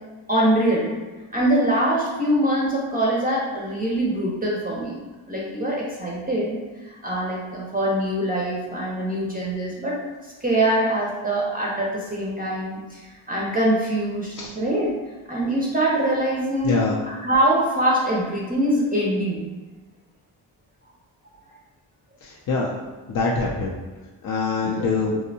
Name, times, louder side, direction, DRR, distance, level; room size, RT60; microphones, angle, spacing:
voice 1, 0.3-0.9 1.3-5.0 5.3-6.6 6.9-14.9 15.3-19.4 24.6-24.9, right 1 dB, 20° right, -4 dB, 0.5 m, -23 dB
voice 2, 16.6-17.0 22.2-22.7 23.1-23.7 24.2-25.2, left 3 dB, 45° left, -3 dB, 0.5 m, -24 dB
2.7 x 2.0 x 2.6 m, 1.3 s
supercardioid pair, 50°, 48 cm